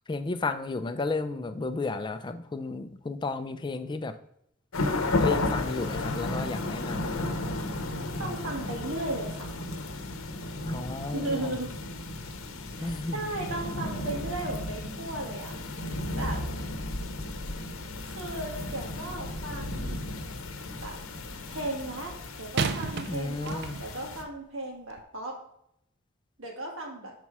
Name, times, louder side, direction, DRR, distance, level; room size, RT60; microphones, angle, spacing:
voice 1, 0.1-4.1 5.2-7.2 10.7-11.6 12.8-13.2 23.1-23.8, left 3 dB, 20° left, 9 dB, 0.4 m, -33 dB
sound 1, 4.7-24.2, left 2 dB, 80° left, 0.8 m, -34 dB
voice 2, 8.2-9.6 11.1-11.7 12.7-15.5 16.2-16.4 18.1-20.0 20.8-20.9 21.5-25.3 26.4-27.1, right 2 dB, 70° right, 0 dB, 1.8 m, -36 dB
sound 2, 19.3-20.1 22.6-24.1 24.9-25.0, right 4 dB, 55° right, 0.5 m, -34 dB
6.0 x 4.2 x 4.7 m, 0.74 s
head